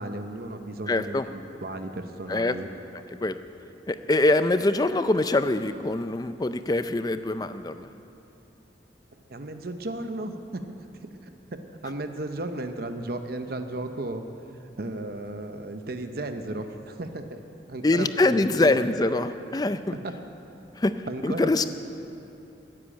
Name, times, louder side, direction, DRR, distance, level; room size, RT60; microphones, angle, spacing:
voice 1, 0.0-2.7 9.3-10.6 11.2-11.3 11.8-14.2 14.6-17.4 17.7-18.8 20.0-20.1 21.1-21.6, right 2 dB, 55° right, 7 dB, 0.8 m, -34 dB
voice 2, 0.9-1.2 2.3-2.6 3.2-3.4 3.9-7.9 17.8-20.0 20.8-20.9 21.2-21.6, left 2 dB, 20° left, 11 dB, 0.5 m, -24 dB
13.5 x 9.9 x 8.8 m, 2.9 s
head